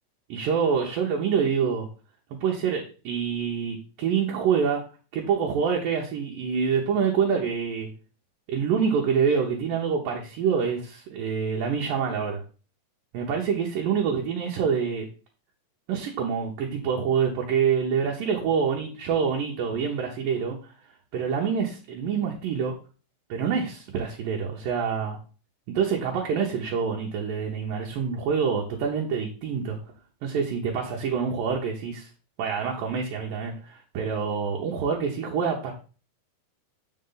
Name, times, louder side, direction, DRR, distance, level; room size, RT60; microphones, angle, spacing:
voice 1, 0.3-1.9 2.3-4.8 5.1-7.9 8.5-12.4 13.1-15.1 15.9-20.7 21.1-22.7 23.3-25.2 25.7-29.8 30.2-32.1 32.4-35.7, right 6 dB, 70° right, -1 dB, 2.5 m, -26 dB
7.9 x 5.4 x 3.8 m, 0.36 s
omnidirectional pair, 4.7 m